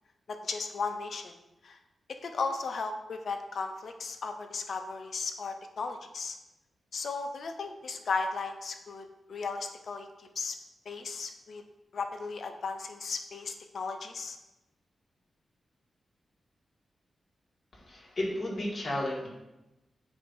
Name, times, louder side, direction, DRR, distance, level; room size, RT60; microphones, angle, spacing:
voice 1, 0.3-1.3 1.6-1.8 2.2-6.4 6.9-10.5 10.9-11.6 11.9-14.4, left 4 dB, 60° left, 5 dB, 0.6 m, -36 dB
voice 2, 17.7-19.3, left 1 dB, 40° left, -4 dB, 1.9 m, -33 dB
7.8 x 2.7 x 6.0 m, 0.97 s
wide cardioid pair, 115°, 0 cm